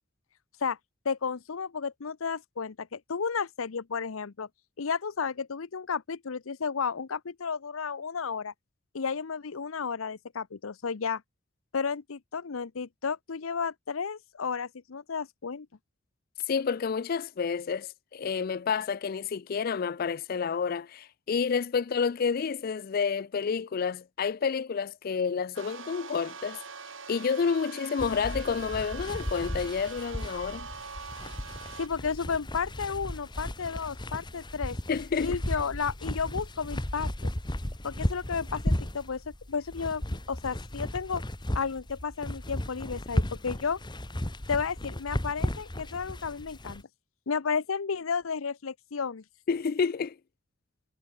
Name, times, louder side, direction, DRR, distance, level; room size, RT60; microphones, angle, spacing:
voice 1, 1.0-4.5 4.8-8.5 8.9-11.2 11.7-15.7 31.8-34.8 35.2-37.3 37.8-40.0 40.3-41.2 41.5-43.8 44.5-46.8 47.3-49.2, left 5 dB, 85° left, 0.7 m, -32 dB
voice 2, 16.5-26.6 27.1-30.7 34.9-35.4 49.5-50.2, left 6 dB, 45° left, 0.4 m, -29 dB
sound 1, 25.6-31.9, right 5 dB, 70° right, 5.2 m, -43 dB
sound 2, 28.0-46.8, left 1 dB, 20° left, 1.5 m, -35 dB
head